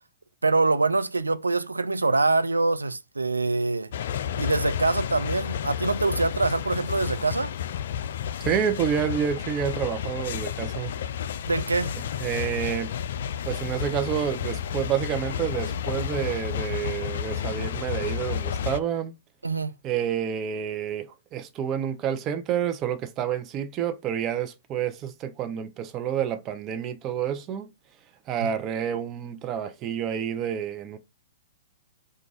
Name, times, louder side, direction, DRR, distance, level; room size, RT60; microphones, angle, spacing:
voice 1, 0.4-3.9 4.4-7.5 11.5-12.0 19.4-19.7 28.4-28.5, right 3 dB, 85° right, 0.4 m, -24 dB
sound 1, 3.9-18.8, left 9 dB, 60° left, 0.3 m, -31 dB
voice 2, 8.4-10.9 12.0-12.9 13.5-19.1 19.8-27.7 28.3-31.0, right 9 dB, 30° right, 0.8 m, -29 dB
4.6 x 2.5 x 3.9 m
figure-of-eight pair, 110°, 0 cm